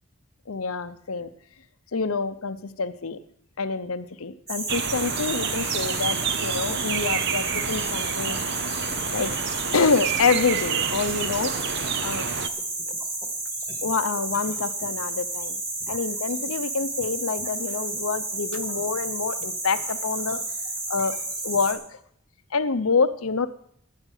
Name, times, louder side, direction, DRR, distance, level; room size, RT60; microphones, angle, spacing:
voice 1, 0.5-1.3 1.9-3.2 3.6-8.4 9.1-9.3 9.7-11.5 12.0-12.3 13.8-15.6 15.9-20.4 20.9-21.1 21.4-21.8 22.5-23.5, left 4 dB, 90° left, 12 dB, 0.8 m, -26 dB
sound 1, 4.5-21.7, right 2 dB, 15° right, 2.1 m, -31 dB
sound 2, 4.7-12.5, right 7 dB, 55° right, 0.6 m, -29 dB
12.5 x 8.8 x 6.6 m, 0.70 s
head